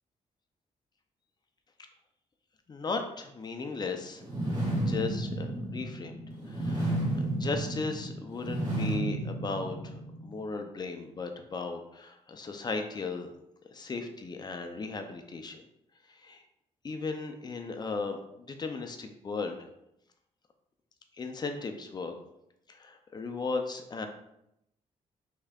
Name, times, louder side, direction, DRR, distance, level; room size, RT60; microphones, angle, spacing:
voice 1, 2.7-4.2 4.5-6.2 6.5-13.3 13.7-15.7 16.1-16.4 16.8-19.7 21.2-22.1 22.7-24.1, left 4 dB, 30° left, 5 dB, 0.5 m, -36 dB
sound 1, 4.2-10.3, right 1 dB, 65° right, 1.7 m, -32 dB
5.3 x 3.7 x 2.4 m, 0.81 s
cardioid pair, 125°, 13 cm